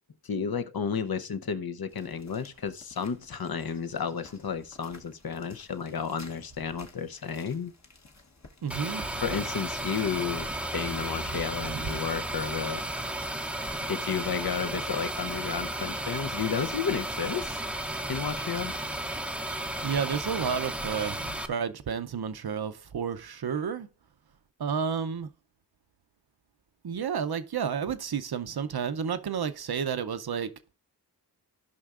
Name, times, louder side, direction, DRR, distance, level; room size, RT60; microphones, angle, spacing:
voice 1, 0.2-7.7 9.2-12.8 13.9-17.6 18.1-18.7, left 6 dB, 55° left, 0.7 m, -32 dB
sound 1, 1.9-9.5, left 3 dB, 40° left, 1.1 m, -55 dB
voice 2, 8.6-9.1 11.7-12.0 19.8-23.9 24.6-25.3 26.8-30.5, right 7 dB, 60° right, 0.6 m, -31 dB
sound 2, 8.7-21.5, right 1 dB, 5° right, 0.6 m, -34 dB
16.5 x 5.5 x 2.4 m
wide cardioid pair, 55°, 42 cm